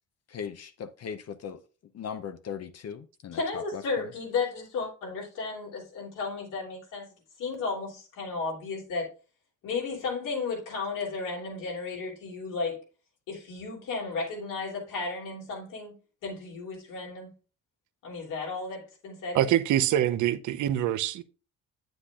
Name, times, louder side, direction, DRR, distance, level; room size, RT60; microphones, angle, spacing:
voice 1, 0.3-1.6 1.9-4.1, left 7 dB, 55° left, 0.7 m, -39 dB
voice 2, 3.3-7.0 7.4-9.1 9.6-12.8 13.3-16.0 16.2-17.3 18.0-19.6, left 4 dB, 85° left, 3.3 m, -34 dB
voice 3, 19.3-21.2, right 11 dB, 70° right, 0.7 m, -25 dB
8.3 x 7.9 x 2.4 m
supercardioid pair, 70°, 31 cm